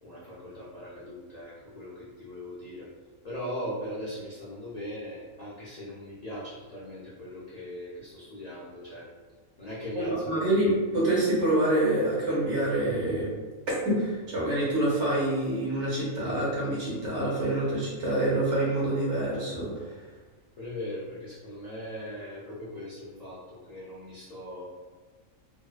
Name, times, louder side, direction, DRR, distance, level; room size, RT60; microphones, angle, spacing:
voice 1, 0.0-2.9 3.2-9.1 9.6-10.7 20.6-24.7, equal, 75° left, -8 dB, 0.3 m, -39 dB
voice 2, 9.9-13.3 13.8-20.0, right 1 dB, 65° right, -6 dB, 1.1 m, -26 dB
2.6 x 2.1 x 2.3 m, 1.3 s
omnidirectional pair, 1.4 m